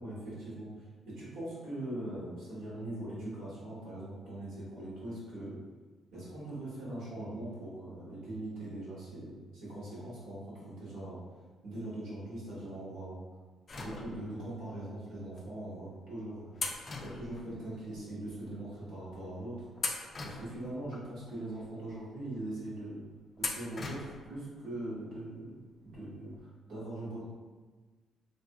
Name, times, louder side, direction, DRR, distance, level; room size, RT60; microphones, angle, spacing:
voice 1, 0.0-5.6 6.1-11.2 11.6-13.2 13.8-16.5 17.0-19.6 20.2-23.0 23.4-27.2, right 1 dB, 85° right, -9 dB, 1.3 m, -41 dB
sound 1, 13.7-14.5 15.3-15.5 16.6-18.0 18.3-18.4 19.1-19.3 19.8-21.1 21.6-21.7 23.4-24.3 24.6-24.7 25.9-26.0 26.3-26.4, left 3 dB, 40° left, 0.3 m, -40 dB
2.7 x 2.6 x 2.2 m, 1.4 s
cardioid pair, 90°, 0 cm